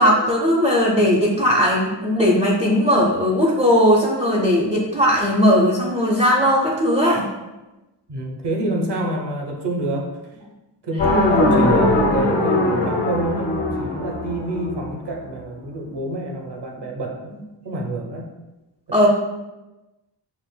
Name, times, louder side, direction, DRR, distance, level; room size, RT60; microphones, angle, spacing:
voice 1, 0.0-7.3 18.9-19.1, equal, 15° right, -5 dB, 0.6 m, -18 dB
voice 2, 8.1-10.2 10.8-17.3 17.6-18.3 18.9-19.1, right 1 dB, 60° right, 1 dB, 0.9 m, -27 dB
sound 1, 11.0-15.0, left 2 dB, 60° left, 1.5 m, -20 dB
7.1 x 2.5 x 2.2 m, 1.0 s
wide cardioid pair, 130°, 47 cm